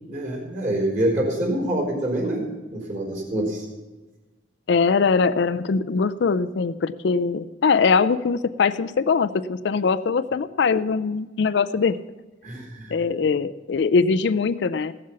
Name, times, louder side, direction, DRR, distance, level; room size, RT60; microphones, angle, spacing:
voice 1, 0.1-3.7 12.4-13.0, right 1 dB, 40° right, 0 dB, 3.9 m, -26 dB
voice 2, 4.7-12.0 12.9-14.9, left 5 dB, 60° left, 12 dB, 0.4 m, -22 dB
16.0 x 7.6 x 5.7 m, 1.2 s
head